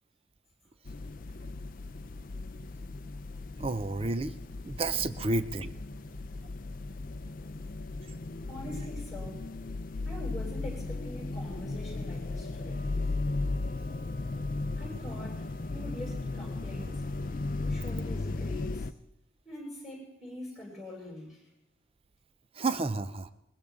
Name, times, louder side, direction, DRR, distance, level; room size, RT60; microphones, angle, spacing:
sound 1, 0.9-18.9, left 3 dB, 45° left, 0.5 m, -36 dB
voice 1, 3.6-4.4 4.6-5.7 22.6-23.3, right 3 dB, 30° right, 13 dB, 0.5 m, -30 dB
voice 2, 8.5-9.5 10.0-12.8 14.8-17.0 17.7-18.9 19.4-21.4, equal, ahead, -4 dB, 6.8 m, -44 dB
Bowed string instrument, 12.7-18.2, right 2 dB, 50° right, 6.6 m, -56 dB
21.0 x 15.5 x 3.7 m, 0.87 s
head